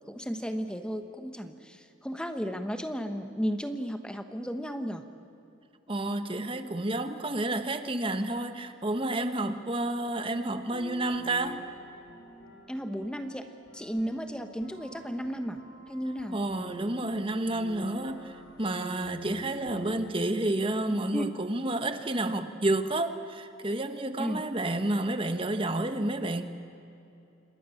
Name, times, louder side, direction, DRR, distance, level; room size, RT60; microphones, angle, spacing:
voice 1, 0.1-5.0 9.4-9.5 12.7-13.5 13.7-15.6 15.9-16.4 20.9-21.3 24.2-24.4, equal, 5° left, 7 dB, 1.2 m, -34 dB
voice 2, 5.9-11.6 16.3-26.5, right 2 dB, 25° right, 9 dB, 1.4 m, -30 dB
sound 1, 10.7-20.0, left 1 dB, 75° left, 4.8 m, -47 dB
29.5 x 27.0 x 7.2 m, 2.8 s
head